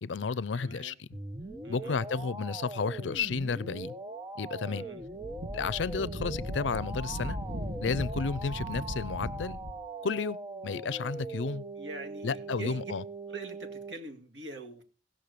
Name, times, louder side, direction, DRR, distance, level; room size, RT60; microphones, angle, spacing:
voice 1, 0.0-1.1 1.7-3.9 4.4-4.9 5.5-7.4 7.8-9.6 10.0-10.4 10.6-11.6 12.2-13.0, left 5 dB, 80° left, 0.5 m, -32 dB
voice 2, 0.5-0.9 1.6-2.0 4.6-5.0 11.8-12.9 13.3-14.8, right 2 dB, 75° right, 2.2 m, -43 dB
sound 1, 1.1-13.9, right 2 dB, 20° right, 0.9 m, -41 dB
Wind, 5.0-9.8, equal, 60° right, 1.8 m, -38 dB
17.5 x 6.3 x 6.7 m
head